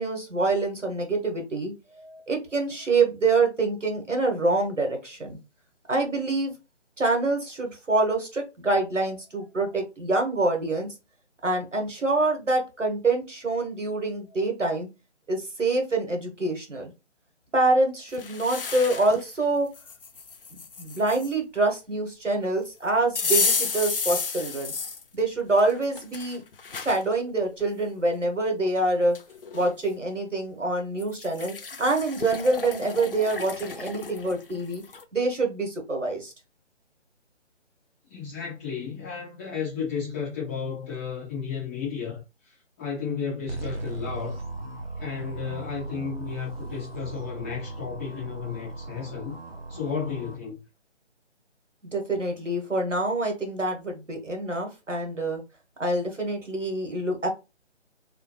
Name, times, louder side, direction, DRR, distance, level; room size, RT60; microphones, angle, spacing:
voice 1, 0.0-1.7 2.0-5.4 5.9-6.5 7.0-10.9 11.4-14.9 15.3-16.9 17.5-19.7 20.8-24.7 25.1-26.4 26.7-29.2 29.5-34.8 35.1-36.3 51.8-55.4 55.8-57.3, right 2 dB, 90° right, 1.3 m, -26 dB
sound 1, 18.1-19.2 19.7-21.3 23.2-25.0 25.6-27.0 27.6-27.7 28.8-28.9 29.1-29.7 31.0-35.0, left 5 dB, 50° left, 0.5 m, -32 dB
voice 2, 38.1-44.4 45.0-49.4 49.7-50.6, left 6 dB, 10° left, 0.9 m, -33 dB
sound 2, 43.5-50.3, right 2 dB, 55° right, 0.9 m, -37 dB
2.9 x 2.3 x 2.9 m
figure-of-eight pair, 150°, 36 cm